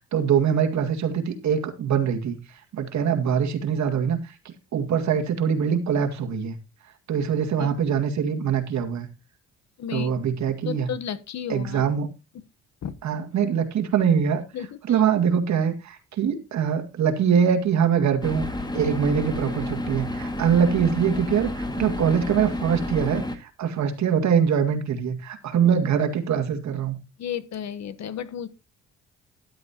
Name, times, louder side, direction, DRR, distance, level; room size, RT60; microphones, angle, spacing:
voice 1, 0.1-2.4 2.7-4.3 4.7-6.6 7.1-9.1 9.9-10.9 11.5-12.1 13.0-14.4 14.9-18.4 18.7-27.0, right 7 dB, 65° right, 2.2 m, -23 dB
voice 2, 9.8-10.2 10.6-11.8 12.8-12.9 14.5-15.0 27.2-28.5, left 9 dB, 60° left, 1.2 m, -33 dB
sound 1, 18.2-23.4, left 1 dB, 15° left, 2.1 m, -30 dB
12.5 x 11.0 x 2.9 m
cardioid pair, 90°, 30 cm